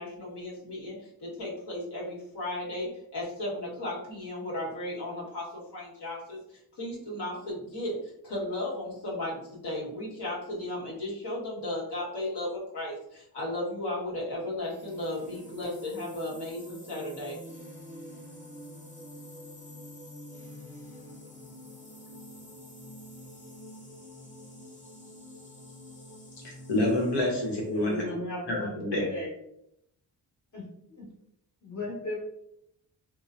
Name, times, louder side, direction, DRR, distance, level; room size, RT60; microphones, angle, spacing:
voice 1, 0.0-17.4, left 1 dB, 70° left, -5 dB, 1.3 m, -35 dB
sound 1, 14.6-28.0, left 1 dB, 20° left, 0.7 m, -47 dB
voice 2, 26.7-28.1 28.5-29.1, left 1 dB, 90° left, -2 dB, 1.0 m, -27 dB
voice 3, 27.7-28.7 29.1-29.3 30.5-30.6 31.0-31.1 31.6-32.2, left 2 dB, 45° left, -2 dB, 1.2 m, -36 dB
2.9 x 2.0 x 2.4 m, 0.77 s
cardioid pair, 70°, 41 cm